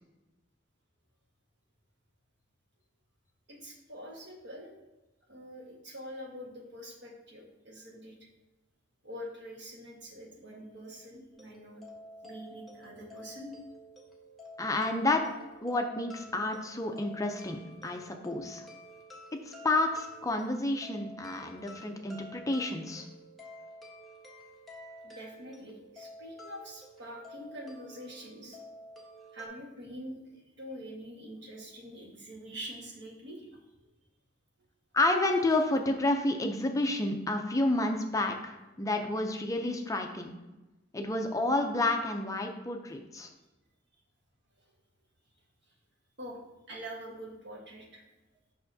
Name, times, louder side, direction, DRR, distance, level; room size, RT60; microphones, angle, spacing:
voice 1, 3.5-4.7 5.3-8.2 9.0-11.8 12.2-13.5 25.0-28.6 29.3-33.9 44.6-44.7 46.2-48.1, equal, 65° right, -2 dB, 1.4 m, -45 dB
sound 1, 11.3-29.5, equal, ahead, 1.1 m, -50 dB
voice 2, 14.6-15.2 15.6-18.6 19.5-23.0 34.9-40.3 40.9-43.3, left 2 dB, 15° left, 4 dB, 0.5 m, -30 dB
6.5 x 5.7 x 2.7 m, 1.0 s
head